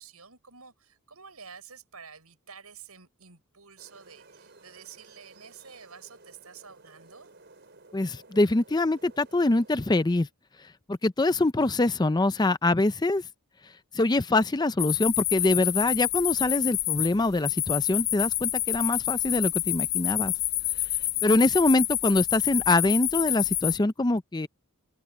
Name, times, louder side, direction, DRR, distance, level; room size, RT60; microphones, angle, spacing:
voice 1, 0.0-7.3, right 6 dB, 80° right, 7.0 m, -49 dB
sound 1, 3.8-10.1, right 3 dB, 50° right, 4.7 m, -55 dB
voice 2, 7.9-10.3 10.9-13.2 13.9-20.3 21.2-24.5, left 2 dB, 20° left, 0.5 m, -24 dB
sound 2, 14.8-23.8, left 14 dB, 45° left, 0.9 m, -28 dB
open air
head